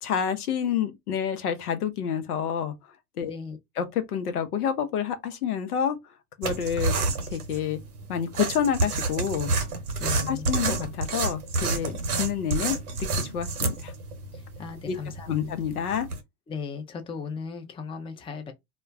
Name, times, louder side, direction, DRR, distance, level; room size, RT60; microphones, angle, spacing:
voice 1, 0.0-2.7 3.2-3.3 3.8-6.0 6.4-6.9 7.3-7.8 8.1-9.5 10.3-13.9 14.9-15.0 15.3-16.1, left 8 dB, 80° left, 0.7 m, -28 dB
voice 2, 3.3-3.6 10.0-10.5 14.3-15.5 16.5-18.5, left 5 dB, 15° left, 0.5 m, -37 dB
sound 1, 6.4-16.2, right 3 dB, 85° right, 0.8 m, -29 dB
2.2 x 2.1 x 3.4 m
hypercardioid pair, 75°, 44 cm